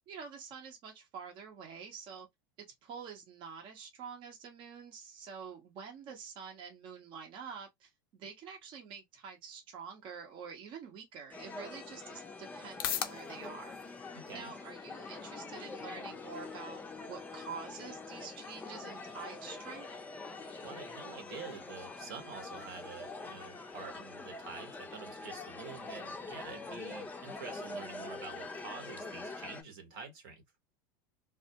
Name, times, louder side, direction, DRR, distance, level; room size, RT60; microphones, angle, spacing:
voice 1, 0.1-2.3 2.8-13.8 14.3-19.9, right 6 dB, 45° right, 0.7 m, -47 dB
sound 1, 11.3-29.6, left 3 dB, 15° left, 0.5 m, -45 dB
sound 2, 11.9-28.3, left 10 dB, 80° left, 0.5 m, -49 dB
voice 2, 14.1-14.5 20.6-30.4, right 5 dB, 75° right, 1.0 m, -47 dB
2.2 x 2.0 x 2.7 m
supercardioid pair, 110°, 12 cm